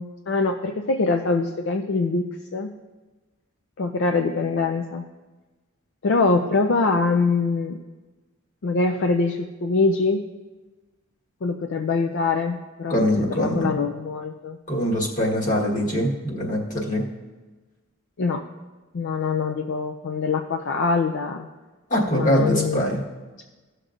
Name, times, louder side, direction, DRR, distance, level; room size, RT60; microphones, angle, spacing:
voice 1, 0.0-2.7 3.8-5.0 6.0-7.8 8.6-10.2 11.4-12.9 13.3-14.6 18.2-18.5 18.9-21.5 22.1-22.8, left 3 dB, 60° left, 4 dB, 0.5 m, -23 dB
voice 2, 12.9-13.8 14.7-17.0 21.9-23.0, equal, 40° left, -2 dB, 1.5 m, -23 dB
15.5 x 6.6 x 2.5 m, 1.2 s
head